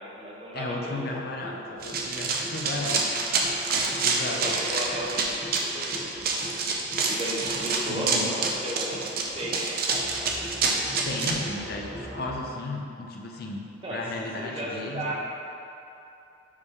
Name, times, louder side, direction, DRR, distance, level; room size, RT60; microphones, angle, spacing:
voice 1, 0.0-1.2 2.7-3.0 4.2-5.2 5.5-6.4 7.1-9.0 9.3-10.4 13.8-14.0 14.4-15.2, right 1 dB, 30° right, -4 dB, 0.8 m, -35 dB
voice 2, 0.5-3.2 3.7-4.6 7.9-8.3 11.0-15.2, left 2 dB, 55° left, 0 dB, 0.6 m, -34 dB
sound 1, 0.9-12.4, equal, 5° left, 0.8 m, -42 dB
Run, 1.8-11.3, right 4 dB, 55° right, 0.6 m, -27 dB
4.9 x 3.6 x 5.4 m, 2.9 s
head